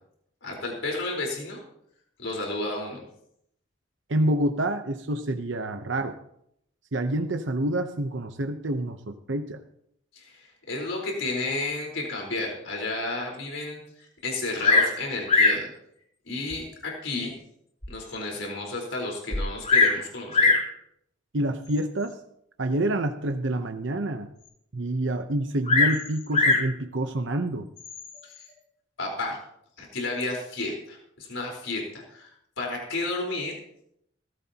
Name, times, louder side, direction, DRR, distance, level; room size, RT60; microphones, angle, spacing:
voice 1, 0.4-1.6 2.2-3.0 10.1-13.8 14.2-15.7 16.3-17.4 17.9-20.6 28.2-28.3 29.0-29.4 29.8-32.3 32.6-33.5, left 2 dB, 80° left, -1 dB, 4.3 m, -32 dB
voice 2, 4.1-6.2 6.9-9.6 21.3-22.2 22.6-24.3 24.7-27.7, right 1 dB, 70° right, 6 dB, 0.9 m, -27 dB
Bird vocalization bird call bird song, 14.6-15.0 15.3-15.7 16.5-16.6 17.2-17.3 17.8-17.9 18.1-18.2 19.3-20.0 20.3-20.7 21.7-22.0 25.6-26.7 27.8-28.2, left 3 dB, 40° left, 4.1 m, -21 dB
18.0 x 16.0 x 2.9 m, 0.73 s
head